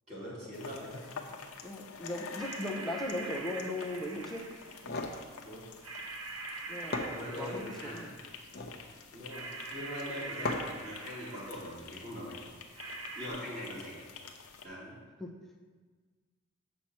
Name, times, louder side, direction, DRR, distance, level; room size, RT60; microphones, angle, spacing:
voice 1, 0.1-1.1 5.4-5.7 7.1-8.0 9.1-12.5 13.1-14.1 14.6-15.0, equal, 30° right, -8 dB, 2.4 m, -42 dB
sound 1, 0.5-14.7, left 5 dB, 80° left, 0.8 m, -49 dB
voice 2, 1.6-4.5 6.7-8.2 13.3-13.4 15.2-15.3, left 1 dB, ahead, 0 dB, 0.6 m, -38 dB
sound 2, 2.4-4.8 5.8-8.3 9.3-11.7 12.8-13.3, right 3 dB, 70° right, 0.8 m, -43 dB
sound 3, 4.6-5.2 6.5-6.6 6.9-7.7 8.4-8.8 10.4-10.9, left 2 dB, 45° left, 0.7 m, -36 dB
7.7 x 5.8 x 4.3 m, 1.4 s
head